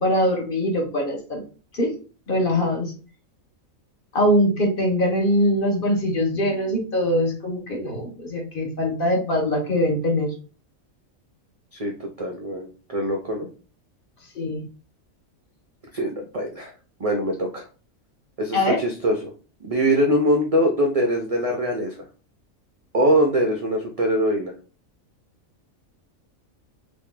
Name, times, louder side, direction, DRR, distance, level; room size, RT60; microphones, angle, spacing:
voice 1, 0.0-1.4 1.7-1.9 2.3-2.9 4.1-10.3 14.3-14.6 18.5-18.8, equal, 45° left, 0 dB, 1.0 m, -22 dB
voice 2, 11.7-13.5 15.9-16.7 17.0-17.6 18.4-19.3 19.6-22.0 22.9-24.5, equal, 55° right, 1 dB, 0.3 m, -23 dB
3.0 x 2.6 x 3.6 m, 0.36 s
omnidirectional pair, 1.4 m